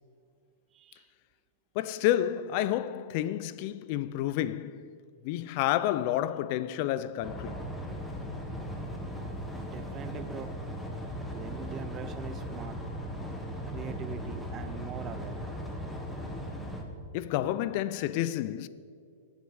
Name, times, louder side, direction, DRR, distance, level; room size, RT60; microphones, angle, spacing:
voice 1, 0.7-1.1 9.5-10.6 11.3-12.8 13.7-15.4, right 8 dB, 25° right, 0.4 m, -42 dB
voice 2, 1.8-4.9 5.2-7.6 17.1-18.7, left 12 dB, 40° left, 0.4 m, -30 dB
sound 1, 7.2-16.8, equal, 5° left, 1.2 m, -38 dB
17.0 x 8.0 x 4.8 m
supercardioid pair, 155°, 0 cm